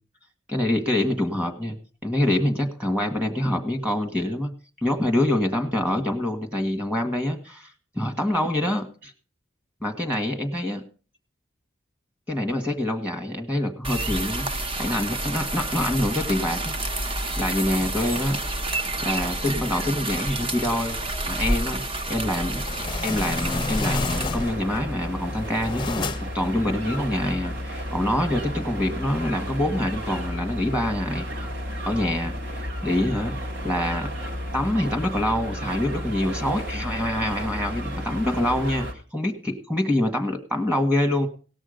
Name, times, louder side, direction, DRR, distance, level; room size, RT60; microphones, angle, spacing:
voice 1, 0.5-1.8 2.0-4.5 4.8-7.7 8.0-9.1 9.8-10.8 12.3-16.7 17.0-18.4 19.0-21.0 21.3-21.8 22.1-31.5 31.9-33.3 33.6-34.1 34.5-38.9 39.1-41.3, left 1 dB, 5° right, 2 dB, 1.8 m, -26 dB
sound 1, 13.8-24.3, right 2 dB, 30° right, 0.8 m, -29 dB
sound 2, 22.3-24.8 25.2-26.5, left 3 dB, 25° left, 0.6 m, -30 dB
sound 3, 24.1-38.9, equal, 70° right, 2.1 m, -32 dB
18.0 x 6.3 x 5.2 m, 0.38 s
head